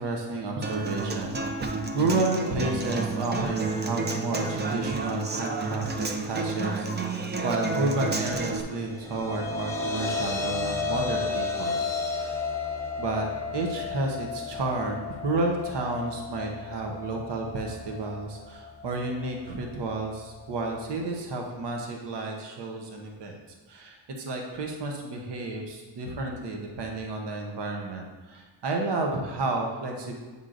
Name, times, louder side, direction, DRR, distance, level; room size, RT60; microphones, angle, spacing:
voice 1, 0.0-11.8 12.1-12.3 13.0-13.3 13.5-23.3 23.7-30.2, right 2 dB, 60° right, 1 dB, 0.9 m, -31 dB
Human voice / Acoustic guitar, 0.6-8.6, right 3 dB, 25° right, 0.4 m, -30 dB
sound 1, 8.7-21.0, left 4 dB, 5° left, 0.8 m, -34 dB
7.7 x 5.4 x 2.5 m, 1.3 s
wide cardioid pair, 110°, 47 cm